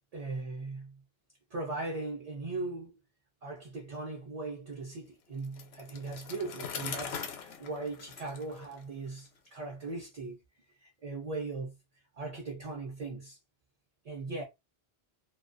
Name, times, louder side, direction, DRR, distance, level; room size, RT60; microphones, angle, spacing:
voice 1, 0.1-1.0 1.5-3.0 3.4-10.4 10.8-11.7 12.2-13.4 14.0-14.4, right 3 dB, 45° right, 0.6 m, -39 dB
Bicycle, 5.4-9.3, left 6 dB, 80° left, 0.8 m, -42 dB
2.2 x 2.2 x 2.5 m
omnidirectional pair, 1.1 m